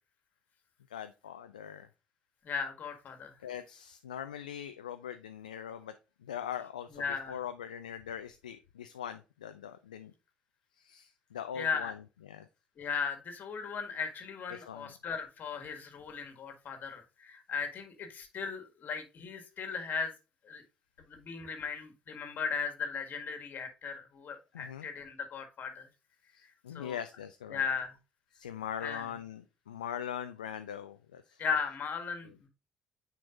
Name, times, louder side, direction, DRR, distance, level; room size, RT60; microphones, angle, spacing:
voice 1, 0.9-1.9 3.4-5.9 6.2-10.1 10.8-12.5 14.5-14.9 24.5-24.9 26.3-27.6 28.3-31.4, left 9 dB, 80° left, 9 dB, 0.4 m, -42 dB
voice 2, 2.4-3.3 6.9-7.4 11.5-11.9 12.8-20.1 20.4-20.6 21.0-25.9 26.7-27.0 27.5-28.0 28.8-29.1 31.4-32.5, left 6 dB, 45° left, 7 dB, 1.7 m, -37 dB
9.2 x 4.6 x 2.5 m, 0.30 s
figure-of-eight pair, 50°, 4 cm